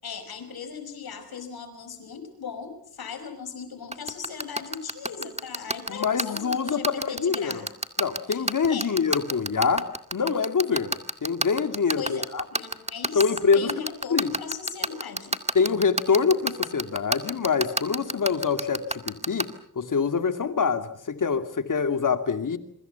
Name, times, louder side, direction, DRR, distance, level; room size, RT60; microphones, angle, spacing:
voice 1, 0.0-7.7 8.3-8.9 9.3-9.4 12.0-15.4, left 6 dB, 85° left, 9 dB, 5.5 m, -38 dB
sound 1, 3.9-19.4, right 2 dB, 20° right, 2.0 m, -26 dB
voice 2, 5.9-7.6 8.0-12.4 13.1-13.7 14.1-14.3 15.5-19.5 19.8-22.6, left 5 dB, 60° left, 8 dB, 2.5 m, -25 dB
26.5 x 24.5 x 7.1 m, 0.67 s
cardioid pair, 80°, 36 cm